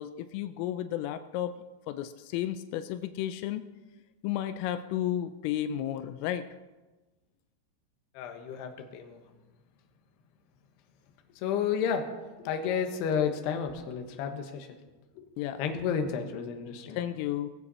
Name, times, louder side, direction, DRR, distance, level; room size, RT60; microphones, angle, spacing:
voice 1, 0.0-1.5 1.9-3.6 4.2-6.4 15.4-15.6 16.9-17.5, left 12 dB, 85° left, 10 dB, 3.2 m, -33 dB
voice 2, 8.1-9.2 11.4-12.1 12.4-14.7 15.2-15.3 15.6-17.0, left 7 dB, 65° left, 6 dB, 3.0 m, -31 dB
19.0 x 15.5 x 4.2 m, 1.2 s
omnidirectional pair, 5.8 m